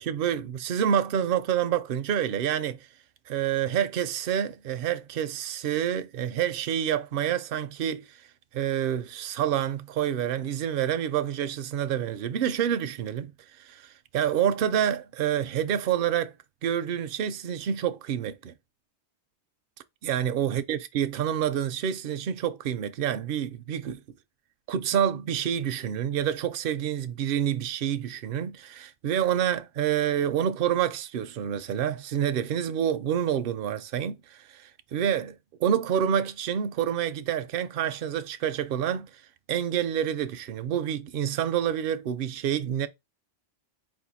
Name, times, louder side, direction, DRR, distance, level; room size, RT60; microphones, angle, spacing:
voice 1, 0.0-2.8 3.3-8.2 8.5-13.3 13.6-16.3 16.6-18.5 20.0-24.0 24.7-39.2 39.5-42.9, right 9 dB, 60° right, 0.6 m, -28 dB
4.4 x 2.6 x 4.1 m
omnidirectional pair, 1.2 m